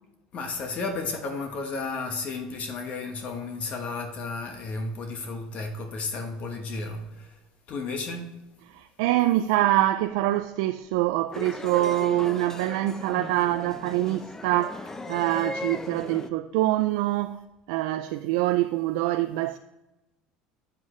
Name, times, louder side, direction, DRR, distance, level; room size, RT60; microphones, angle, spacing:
voice 1, 0.3-7.4 7.7-8.3, left 3 dB, 45° left, 1.2 m, -33 dB
voice 2, 8.7-17.4 17.7-19.6, right 15 dB, 80° right, 0.3 m, -25 dB
sound 1, 11.3-16.3, left 2 dB, 15° left, 0.6 m, -37 dB
8.1 x 7.3 x 3.1 m
supercardioid pair, 115°, 3 cm